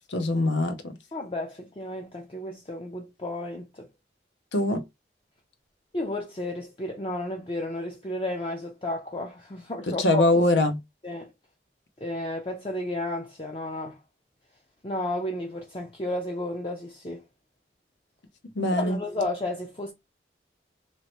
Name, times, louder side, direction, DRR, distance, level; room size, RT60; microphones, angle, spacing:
voice 1, 0.1-0.9 4.5-4.8 9.9-10.8 18.6-19.0, left 1 dB, 85° left, 0.8 m, -23 dB
voice 2, 1.1-3.9 5.9-10.2 11.0-11.3 12.0-14.0 14.8-17.2 18.8-19.9, left 1 dB, 30° left, 0.5 m, -32 dB
3.1 x 2.8 x 3.0 m
head